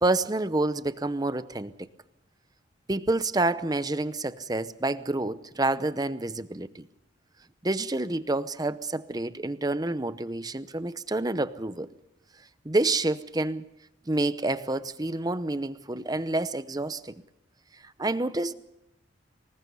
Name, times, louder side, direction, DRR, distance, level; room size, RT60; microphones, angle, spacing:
voice 1, 0.0-1.7 2.9-6.9 7.6-11.9 12.6-13.6 14.1-17.1 18.0-18.5, right 2 dB, 20° right, 0.7 m, -28 dB
25.0 x 20.5 x 5.5 m
head